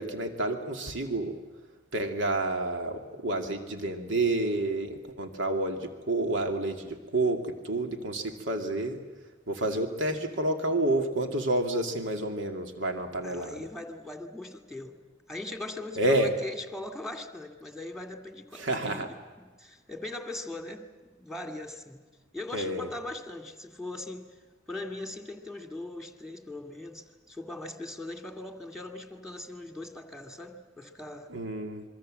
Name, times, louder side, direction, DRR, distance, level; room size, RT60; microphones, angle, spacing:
voice 1, 0.0-1.4 1.9-9.0 9.5-13.7 16.0-16.3 18.5-19.1 22.5-22.9 31.3-31.8, right 2 dB, 75° right, 5 dB, 2.4 m, -29 dB
voice 2, 13.2-15.0 15.3-22.0 22.3-24.3 24.7-31.3, left 2 dB, ahead, 5 dB, 2.2 m, -40 dB
26.0 x 23.0 x 7.6 m, 1.3 s
head